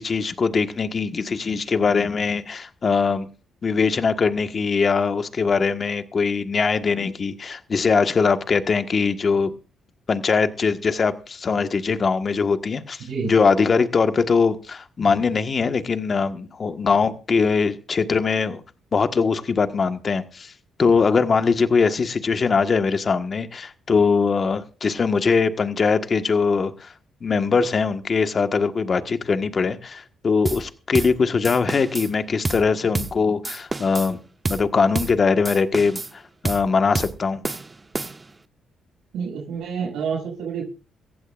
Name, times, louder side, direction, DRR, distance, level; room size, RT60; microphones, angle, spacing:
voice 1, 0.0-3.3 3.6-9.5 10.1-18.6 18.9-20.5 20.8-26.9 27.2-34.2 34.5-37.4, left 5 dB, 40° left, 1.5 m, -21 dB
voice 2, 13.0-13.3 39.1-40.6, right 6 dB, 80° right, 6.8 m, -28 dB
sound 1, 30.5-30.7 30.9-31.2 31.4-32.1 32.4-32.7 32.9-33.2 33.4-34.1 34.5-34.7 35.0-35.2 35.5-36.1 36.5-36.7 37.0-37.2 37.4-38.4, right 3 dB, 20° right, 1.0 m, -28 dB
18.0 x 15.5 x 2.5 m
cardioid pair, 90°, 0 cm